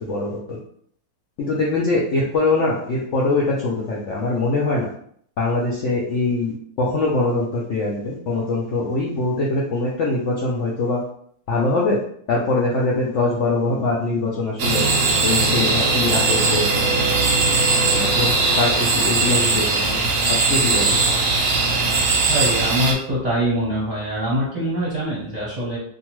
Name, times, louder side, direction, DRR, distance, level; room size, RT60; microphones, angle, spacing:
voice 1, 0.0-0.6 1.4-4.9 5.4-11.0 11.5-12.0 12.3-14.8 15.2-16.7 17.9-18.3 18.6-19.8 20.5-21.0, left 2 dB, 75° left, -4 dB, 0.7 m, -22 dB
sound 1, 14.6-22.9, right 3 dB, 65° right, 0.8 m, -19 dB
voice 2, 22.3-25.8, right 1 dB, 35° right, -8 dB, 0.7 m, -24 dB
2.7 x 2.4 x 3.0 m, 0.64 s
omnidirectional pair, 1.8 m